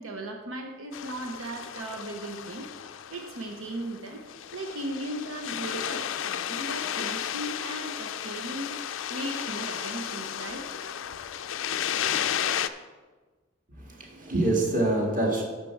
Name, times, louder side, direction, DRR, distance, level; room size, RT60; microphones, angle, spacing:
voice 1, 0.0-4.2 4.5-8.8 9.1-10.6, right 1 dB, 85° right, 3 dB, 0.9 m, -37 dB
sound 1, 0.9-12.7, left 9 dB, 70° left, 0.4 m, -33 dB
voice 2, 13.7-15.4, right 1 dB, 40° right, 0 dB, 1.8 m, -26 dB
10.0 x 6.7 x 4.6 m, 1.3 s
head